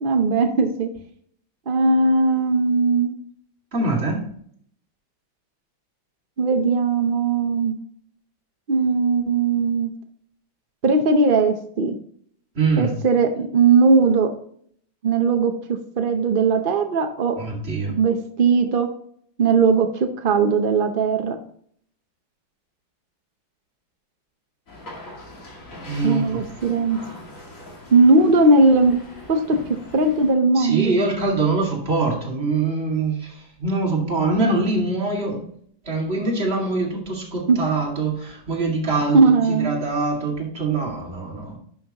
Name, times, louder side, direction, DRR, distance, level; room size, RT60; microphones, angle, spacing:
voice 1, 0.0-0.9 1.7-3.2 6.4-7.8 8.7-9.9 10.8-12.0 12.8-14.3 15.0-15.5 16.0-17.4 17.9-18.9 19.4-21.4 26.0-27.0 27.9-29.0 29.3-29.6 29.9-30.9 37.5-37.6 39.1-39.8, right 3 dB, 75° right, 6 dB, 0.5 m, -18 dB
voice 2, 3.7-4.3 12.5-12.9 17.4-17.9 25.9-26.4 30.5-35.5 35.8-41.6, right 3 dB, 30° right, -1 dB, 2.3 m, -24 dB
sound 1, 24.7-30.3, left 1 dB, 40° left, 2.5 m, -41 dB
11.0 x 6.3 x 2.9 m, 0.62 s
omnidirectional pair, 2.1 m